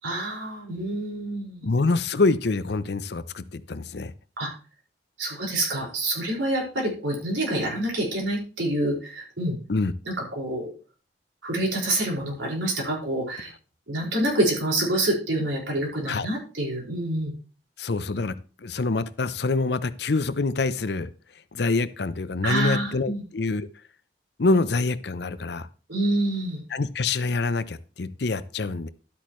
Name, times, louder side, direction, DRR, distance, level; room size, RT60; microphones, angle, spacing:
voice 1, 0.0-1.7 4.4-4.5 5.2-9.6 10.0-10.7 11.4-13.5 13.9-17.3 22.4-23.2 25.9-26.6, right 1 dB, 85° right, -2 dB, 5.0 m, -27 dB
voice 2, 1.6-4.1 9.7-9.9 16.1-16.3 17.8-21.1 21.5-23.7 24.4-25.7 26.7-28.9, left 3 dB, 60° left, 15 dB, 0.6 m, -26 dB
12.0 x 8.7 x 3.1 m, 0.36 s
head